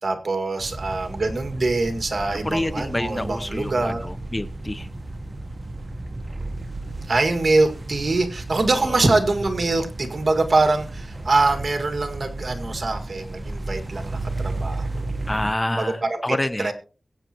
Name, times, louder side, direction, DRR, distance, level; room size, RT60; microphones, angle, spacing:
voice 1, 0.0-4.1 7.1-14.9 15.7-16.2 16.6-16.7, right 3 dB, 60° right, 2.0 m, -23 dB
sound 1, 0.6-15.5, right 2 dB, 40° right, 1.1 m, -33 dB
voice 2, 2.3-4.9 8.8-9.1 15.3-16.7, left 1 dB, 20° left, 0.7 m, -28 dB
22.0 x 8.8 x 3.0 m
wide cardioid pair, 55°, 0 cm